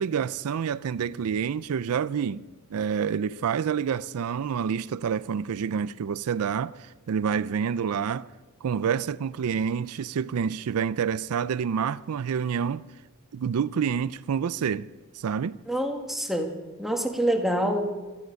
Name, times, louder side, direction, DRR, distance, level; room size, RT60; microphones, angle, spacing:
voice 1, 0.0-2.4 2.7-8.3 8.6-12.9 13.3-14.9 15.1-15.6, right 7 dB, 80° right, 0.4 m, -28 dB
voice 2, 15.7-16.5 16.8-18.0, equal, ahead, 1.5 m, -26 dB
16.0 x 14.0 x 5.2 m
head